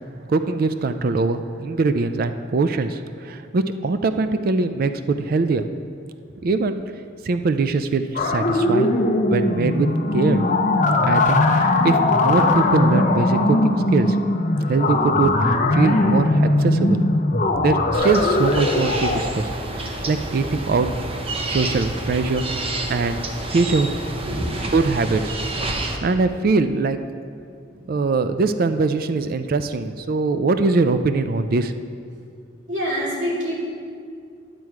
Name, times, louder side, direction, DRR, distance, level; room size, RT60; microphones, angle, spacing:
voice 1, 0.3-5.6 6.4-6.8 7.2-8.9 9.3-9.9 10.1-10.4 11.0-14.2 14.7-15.3 15.7-17.0 17.6-19.5 19.8-20.9 21.4-22.4 22.9-23.2 23.5-23.9 24.7-25.4 26.0-27.0 27.9-31.7, right 3 dB, 50° right, 10 dB, 0.4 m, -22 dB
sound 1, 8.2-19.2, left 2 dB, 45° left, 0.8 m, -19 dB
sound 2, 17.9-26.0, right 2 dB, 30° right, 0.8 m, -29 dB
voice 2, 24.2-24.7 27.7-27.9 32.7-33.7, equal, 90° right, -5 dB, 2.5 m, -26 dB
11.0 x 7.6 x 4.7 m, 2.3 s
head